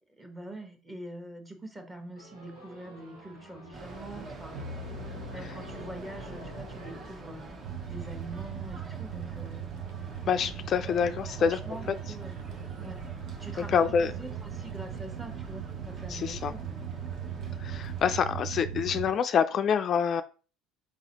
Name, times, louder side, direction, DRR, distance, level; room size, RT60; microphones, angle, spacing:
voice 1, 0.2-4.6 5.3-9.7 11.0-12.5 12.8-13.1 13.4-16.6, right 1 dB, 15° right, 4 dB, 1.2 m, -44 dB
sound 1, 2.1-7.7, left 1 dB, 90° right, 1.7 m, -45 dB
sound 2, 3.7-18.1, right 2 dB, 40° right, 1.1 m, -45 dB
sound 3, 7.6-19.1, right 9 dB, 65° right, 0.6 m, -39 dB
voice 2, 10.3-11.6 13.6-14.1 16.1-16.5 17.6-20.2, left 7 dB, 45° left, 10 dB, 0.3 m, -26 dB
4.4 x 3.8 x 2.9 m, 0.36 s
hypercardioid pair, 70°, 0 cm